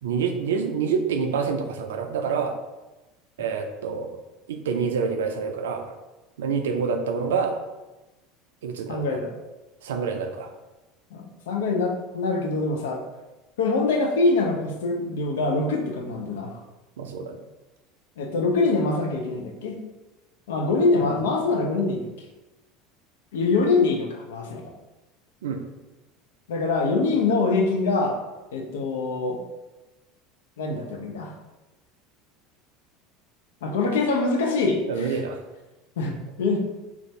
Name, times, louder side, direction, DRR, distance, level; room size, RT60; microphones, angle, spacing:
voice 1, 0.0-2.5 3.4-4.2 4.5-6.0 6.4-7.6 8.6-9.2 9.8-10.5 17.0-17.4 21.0-21.1 25.4-25.6 34.9-35.4, right 5 dB, 80° right, 5 dB, 0.3 m, -27 dB
voice 2, 8.9-9.4 11.1-13.0 13.6-16.6 18.2-19.8 20.5-22.0 23.3-24.7 26.5-28.2 28.5-29.4 30.6-31.3 33.6-35.2 36.0-36.6, left 3 dB, 75° left, 3 dB, 0.4 m, -24 dB
2.5 x 2.3 x 3.1 m, 1.1 s
hypercardioid pair, 80°, 0 cm